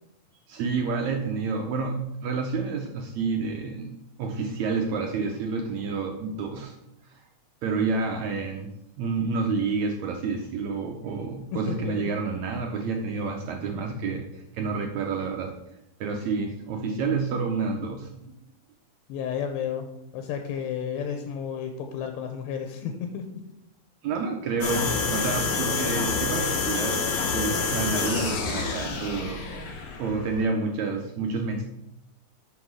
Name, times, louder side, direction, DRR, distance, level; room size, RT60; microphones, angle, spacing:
voice 1, 0.5-6.7 7.1-7.2 7.6-8.7 9.0-15.5 16.0-18.3 24.0-27.0 27.3-29.7 30.0-31.6, right 4 dB, 80° right, 2 dB, 1.7 m, -29 dB
voice 2, 11.5-12.1 19.1-19.9 20.1-23.2, left 8 dB, 85° left, 5 dB, 2.5 m, -32 dB
sound 1, 24.6-30.4, left 4 dB, 60° left, 1.4 m, -28 dB
6.2 x 5.9 x 6.3 m, 0.85 s
omnidirectional pair, 4.1 m